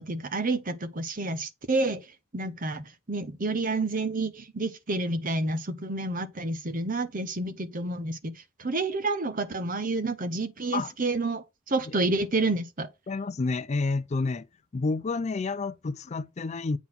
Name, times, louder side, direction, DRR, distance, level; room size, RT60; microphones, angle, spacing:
voice 1, 0.0-2.0 2.3-8.3 8.6-12.9, right 2 dB, 40° right, 1.0 m, -29 dB
voice 2, 13.1-14.5 14.7-16.8, left 3 dB, 35° left, 0.4 m, -29 dB
8.2 x 3.8 x 5.9 m
head